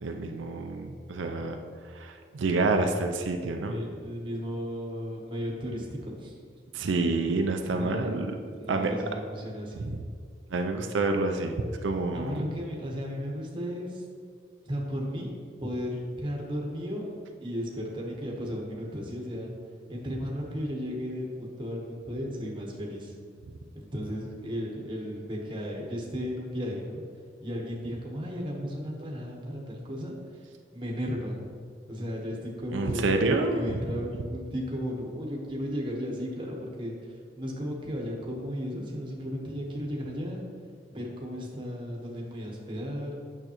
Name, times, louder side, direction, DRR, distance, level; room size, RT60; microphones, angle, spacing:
voice 1, 0.0-1.6 1.9-3.8 6.7-8.3 8.7-8.9 9.7-10.1 10.5-11.5 11.8-12.4 32.7-33.8, right 3 dB, 85° right, 4 dB, 0.5 m, -28 dB
voice 2, 3.6-6.3 7.7-8.2 8.5-9.9 12.1-14.0 14.6-17.1 17.4-19.5 19.9-23.1 23.7-27.0 27.4-30.2 30.7-31.4 31.9-36.9 37.4-40.4 40.9-43.2, equal, 25° right, -1 dB, 1.1 m, -35 dB
8.8 x 6.5 x 3.0 m, 2.1 s
head